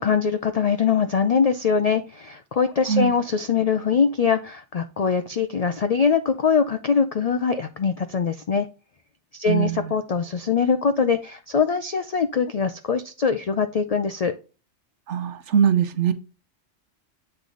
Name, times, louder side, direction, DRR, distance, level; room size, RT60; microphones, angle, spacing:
voice 1, 0.0-8.7 9.3-14.3, left 6 dB, 75° left, 0.3 m, -22 dB
voice 2, 9.5-9.8 15.1-16.1, right 8 dB, 70° right, 1.0 m, -21 dB
8.3 x 3.4 x 3.8 m
omnidirectional pair, 1.3 m